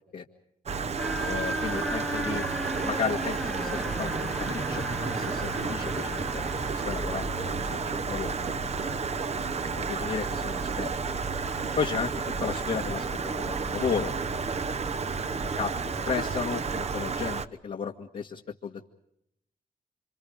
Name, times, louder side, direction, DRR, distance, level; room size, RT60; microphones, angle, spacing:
Stream, 0.7-17.5, right 5 dB, 50° right, 0.9 m, -31 dB
sound 1, 1.0-16.8, left 1 dB, 5° left, 1.2 m, -38 dB
voice 1, 1.2-2.5 2.8-6.4 6.7-9.0 9.8-11.1 11.8-12.1 12.4-13.1 13.4-14.1 15.6-15.8 16.1-18.9, left 6 dB, 65° left, -1 dB, 1.9 m, -34 dB
29.0 x 26.0 x 5.0 m, 0.76 s
wide cardioid pair, 110°, 15 cm